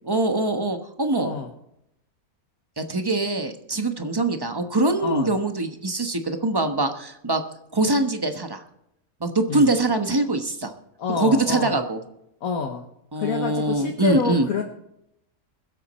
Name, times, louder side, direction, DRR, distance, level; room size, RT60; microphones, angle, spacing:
voice 1, 0.1-1.3 2.8-7.4 7.7-8.6 9.2-10.7 11.1-12.0 13.1-14.5, right 2 dB, 20° right, 7 dB, 0.9 m, -23 dB
voice 2, 1.2-1.5 5.0-5.3 9.5-9.8 11.0-11.8 12.4-12.8 13.2-14.6, left 6 dB, 70° left, 3 dB, 1.5 m, -27 dB
22.0 x 8.0 x 4.2 m, 0.79 s
omnidirectional pair, 1.6 m